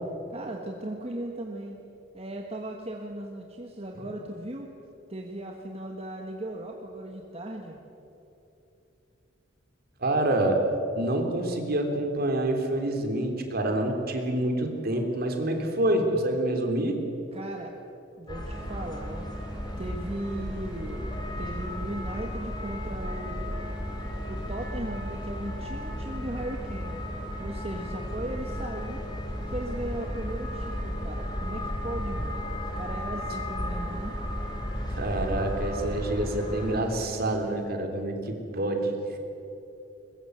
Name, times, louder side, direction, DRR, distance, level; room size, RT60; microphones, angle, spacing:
voice 1, 0.3-1.8 2.1-4.7 5.1-7.8 17.3-17.7 18.2-19.2 19.8-21.0 21.4-23.4 24.3-27.0 27.4-29.0 29.5-32.5 32.8-34.1, right 1 dB, 30° right, 1 dB, 1.6 m, -37 dB
voice 2, 10.0-10.6 10.9-17.0 34.9-39.2, right 1 dB, 55° right, 3 dB, 3.3 m, -27 dB
sound 1, 18.3-36.8, equal, 25° left, 4.0 m, -34 dB
sound 2, 18.5-37.8, equal, 5° right, 2.5 m, -43 dB
22.5 x 21.0 x 8.0 m, 3.0 s
head